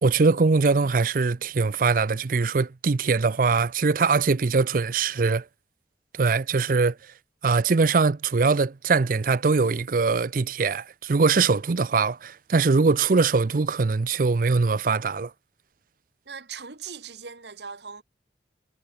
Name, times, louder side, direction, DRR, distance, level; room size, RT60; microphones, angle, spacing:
voice 1, 0.0-5.4 6.2-7.0 7.4-15.3, right 4 dB, 50° right, 0.5 m, -22 dB
voice 2, 16.3-18.0, right 6 dB, 75° right, 1.7 m, -39 dB
head